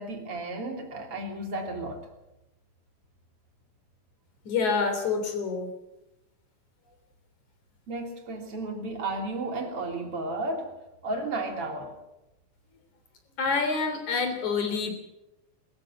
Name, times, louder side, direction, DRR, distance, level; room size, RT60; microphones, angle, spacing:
voice 1, 0.0-2.1 7.9-10.7 11.0-12.0, right 2 dB, 40° right, 3 dB, 3.9 m, -33 dB
voice 2, 4.4-5.7 13.4-14.9, left 4 dB, 55° left, 7 dB, 4.6 m, -27 dB
21.5 x 14.5 x 9.3 m, 0.95 s
omnidirectional pair, 4.1 m